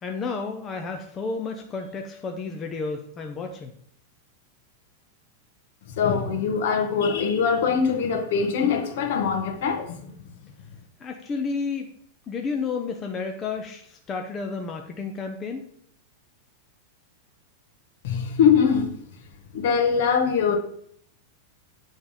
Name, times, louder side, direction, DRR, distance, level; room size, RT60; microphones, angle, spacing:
voice 1, 0.0-3.7 11.0-11.9 12.3-15.6, left 4 dB, 15° left, 3 dB, 0.5 m, -31 dB
voice 2, 5.9-10.1 18.0-18.9 19.5-20.6, left 6 dB, 55° left, 5 dB, 1.2 m, -22 dB
8.8 x 3.5 x 5.4 m, 0.65 s
supercardioid pair, 175°, 0 cm